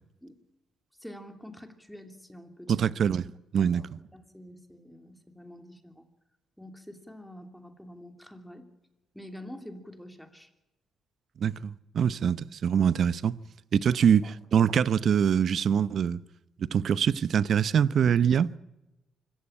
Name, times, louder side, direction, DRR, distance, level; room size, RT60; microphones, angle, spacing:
voice 1, 1.0-2.8 3.6-6.0 6.6-8.7 9.1-10.5 14.2-14.3, left 1 dB, ahead, 2.9 m, -46 dB
voice 2, 2.7-3.8 11.4-13.3 13.7-16.2 16.6-18.5, right 8 dB, 60° right, 0.8 m, -24 dB
24.5 x 15.5 x 8.8 m
cardioid pair, 90°, 0 cm